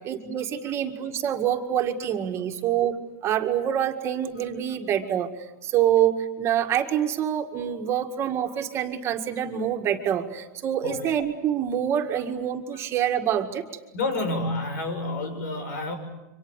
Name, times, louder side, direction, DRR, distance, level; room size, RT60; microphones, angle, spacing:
voice 1, 0.0-2.9 3.2-5.3 5.6-13.6, right 10 dB, 30° right, 4 dB, 2.0 m, -26 dB
voice 2, 10.8-11.1 13.9-15.9, left 2 dB, 80° left, 8 dB, 6.8 m, -29 dB
27.5 x 25.0 x 8.3 m, 0.99 s
supercardioid pair, 150°, 9 cm